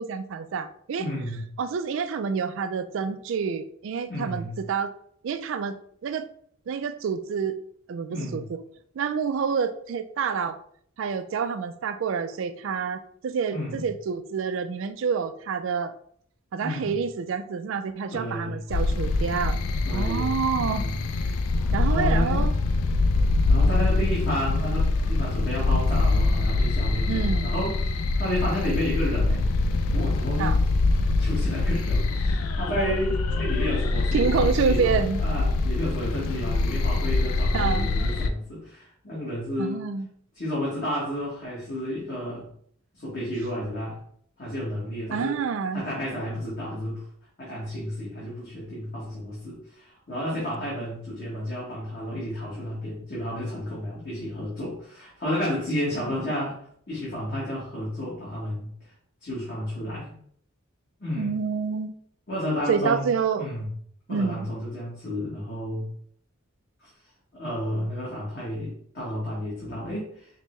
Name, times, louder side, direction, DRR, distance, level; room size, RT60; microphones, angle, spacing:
voice 1, 0.0-1.1 1.6-4.9 5.2-5.8 6.0-6.3 6.7-7.6 7.9-8.6 9.0-10.6 11.0-15.9 16.5-19.6 19.9-20.8 21.7-22.5 27.1-27.5 30.4-30.6 34.1-35.2 37.5-37.9 39.6-40.1 45.1-45.8 61.2-61.9 62.7-63.5 64.1-64.5, right 6 dB, 60° right, 10 dB, 0.3 m, -28 dB
voice 2, 1.0-1.5 4.1-4.6 8.1-8.4 13.5-13.8 16.6-16.9 18.1-18.6 19.8-21.0 21.7-22.5 23.5-29.4 29.9-30.6 31.2-39.8 40.3-42.5 42.9-44.0 44.4-45.4 45.7-47.0 47.4-56.6 56.9-58.7 59.2-60.1 61.0-61.3 62.3-63.7 64.1-65.9 66.8-66.9 67.3-70.3, left 1 dB, 45° left, -7 dB, 1.2 m, -31 dB
sound 1, 18.7-38.3, left 3 dB, 85° left, 0.4 m, -24 dB
5.2 x 2.1 x 3.0 m, 0.62 s
head